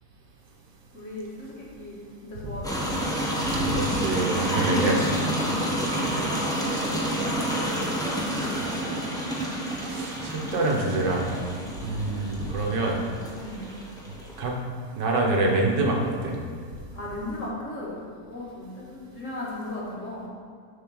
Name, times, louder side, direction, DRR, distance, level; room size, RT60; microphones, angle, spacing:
voice 1, 0.9-3.1 4.5-5.0 5.4-9.2 11.6-11.9 13.4-13.6 16.9-18.0 18.3-20.3, left 2 dB, 45° left, -6 dB, 2.1 m, -36 dB
sound 1, 2.6-14.4, right 1 dB, 5° left, 0.8 m, -29 dB
voice 2, 3.5-5.0 9.9-11.3 11.8-13.0 14.4-14.5 15.0-16.4, right 2 dB, 85° right, 0 dB, 1.7 m, -25 dB
7.0 x 4.4 x 6.3 m, 2.1 s
omnidirectional pair, 1.8 m